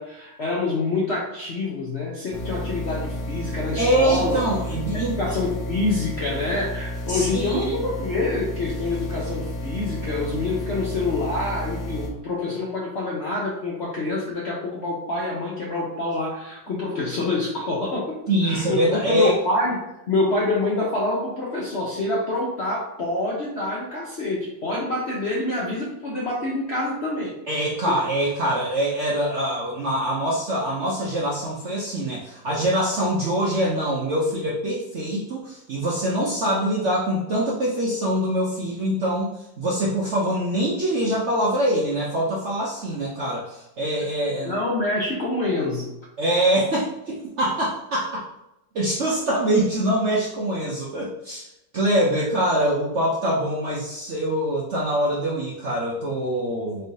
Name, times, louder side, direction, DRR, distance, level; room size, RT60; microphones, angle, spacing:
voice 1, 0.0-4.4 4.9-27.3 44.4-45.9, left 2 dB, 65° left, -4 dB, 0.6 m, -26 dB
sound 1, 2.3-12.1, left 1 dB, 80° left, 1.6 m, -31 dB
voice 2, 3.8-5.2 7.1-7.7 18.3-19.3 27.5-44.6 46.2-48.2 48.7-51.5 51.7-56.9, right 1 dB, 65° right, -4 dB, 0.7 m, -24 dB
4.3 x 3.2 x 2.7 m, 0.90 s
omnidirectional pair, 2.0 m